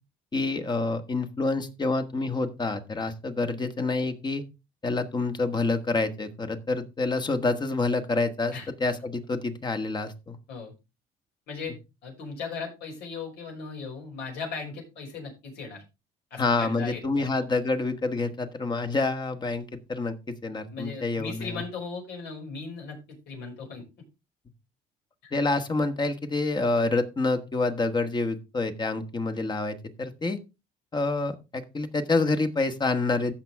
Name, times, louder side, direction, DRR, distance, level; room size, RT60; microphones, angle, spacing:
voice 1, 0.3-4.4 4.8-10.4 16.4-21.6 25.3-30.4 30.9-33.3, left 3 dB, 25° left, 8 dB, 1.5 m, -27 dB
voice 2, 12.0-15.8 16.3-17.3 20.7-23.0 23.3-23.8 25.2-25.3, left 4 dB, 80° left, -1 dB, 5.9 m, -37 dB
15.0 x 6.1 x 3.5 m, 0.26 s
cardioid pair, 110°, 17 cm